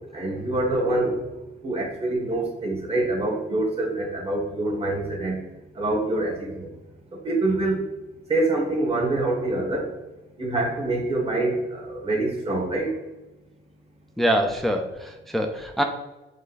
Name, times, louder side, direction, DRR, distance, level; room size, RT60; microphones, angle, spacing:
voice 1, 0.1-1.2 1.6-5.4 5.8-6.7 7.2-7.8 8.3-9.9 10.4-12.9, right 2 dB, 30° right, -1 dB, 1.4 m, -25 dB
voice 2, 14.2-15.8, equal, ahead, 4 dB, 0.4 m, -24 dB
5.2 x 2.2 x 4.0 m, 1.0 s
cardioid pair, 90°, 20 cm